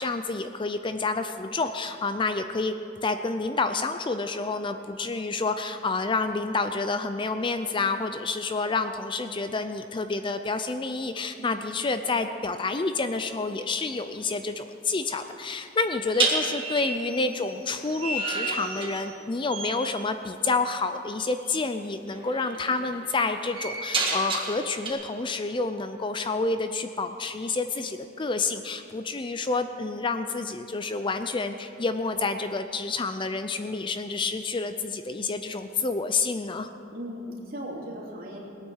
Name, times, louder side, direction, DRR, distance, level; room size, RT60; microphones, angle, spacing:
voice 1, 0.0-2.7 3.0-36.7, left 3 dB, 25° left, 9 dB, 0.4 m, -29 dB
sound 1, 13.5-13.8 16.1-19.2 19.5-19.9 21.4-21.6 22.1-24.9, right 3 dB, 25° right, 1.9 m, -31 dB
voice 2, 36.9-38.4, equal, 45° right, -3 dB, 3.1 m, -38 dB
20.0 x 9.1 x 6.4 m, 2.7 s
head